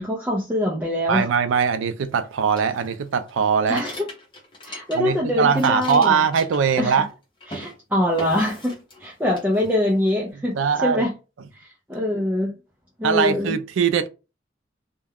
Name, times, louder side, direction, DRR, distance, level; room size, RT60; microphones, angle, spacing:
voice 1, 0.0-1.3 3.7-3.9 4.6-6.2 6.8-7.0 7.5-8.7 9.0-11.1 11.5-12.5 13.0-13.6, left 1 dB, 10° right, 0.4 m, -24 dB
voice 2, 1.1-3.8 4.9-7.1 10.5-11.1 13.0-14.1, right 6 dB, 85° right, 0.4 m, -21 dB
sound 1, 2.5-5.2 5.4-7.1 7.4-7.7 8.2-9.1 9.3-10.1, left 1 dB, 25° left, 0.8 m, -39 dB
2.3 x 2.1 x 3.4 m
head